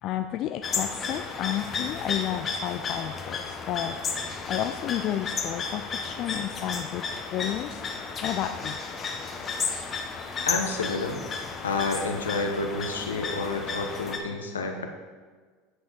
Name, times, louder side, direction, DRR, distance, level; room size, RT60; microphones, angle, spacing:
voice 1, 0.0-7.8 8.2-8.8, left 11 dB, 50° left, 8 dB, 0.3 m, -32 dB
sound 1, 0.6-14.2, left 5 dB, 35° left, 1.1 m, -33 dB
voice 2, 10.4-11.2 11.6-14.9, left 3 dB, 85° left, 4 dB, 0.9 m, -29 dB
9.4 x 5.6 x 4.3 m, 1.5 s
hypercardioid pair, 80°, 0 cm